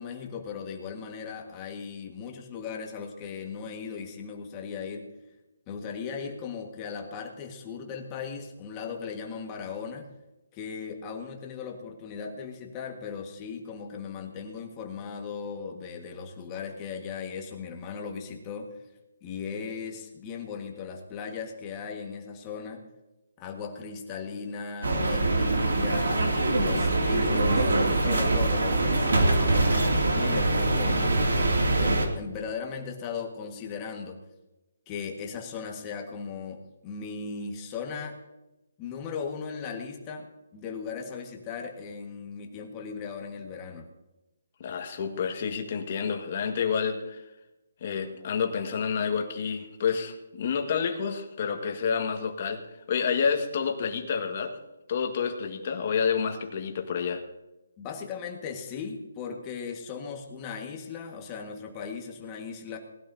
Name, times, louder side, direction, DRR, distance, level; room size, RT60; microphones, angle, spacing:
voice 1, 0.0-5.1 5.7-10.1 10.5-18.7 19.2-22.8 23.4-27.7 28.0-31.2 31.7-34.2 34.9-38.2 38.8-43.9 57.8-62.8, left 6 dB, 20° left, 2 dB, 1.7 m, -37 dB
sound 1, 24.8-32.1, right 2 dB, 85° right, 2.6 m, -24 dB
voice 2, 44.6-47.2 47.8-52.6 52.9-54.5 54.9-57.2, left 6 dB, 35° left, 4 dB, 1.7 m, -29 dB
19.5 x 12.5 x 2.8 m, 1.0 s
hypercardioid pair, 170°, 0 cm